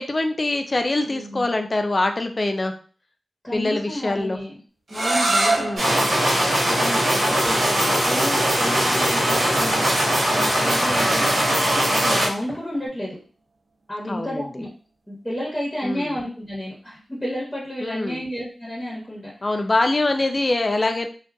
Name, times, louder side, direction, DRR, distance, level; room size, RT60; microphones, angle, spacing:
voice 1, 0.0-2.7 3.5-4.4 5.6-5.9 14.1-14.5 15.8-16.2 17.8-18.2 19.4-21.1, left 2 dB, 40° left, 6 dB, 0.4 m, -24 dB
voice 2, 1.1-1.4 3.4-4.5 4.9-11.4 11.9-13.2 13.9-14.7 15.1-19.6, equal, 10° left, -5 dB, 1.2 m, -31 dB
sound 1, 4.9-10.6, right 2 dB, 60° right, 0.7 m, -28 dB
sound 2, 5.8-12.3, equal, 85° right, 1.2 m, -20 dB
Fill (with liquid), 7.4-12.8, equal, 20° right, 1.1 m, -34 dB
2.5 x 2.3 x 2.5 m, 0.39 s
cardioid pair, 45°, 0 cm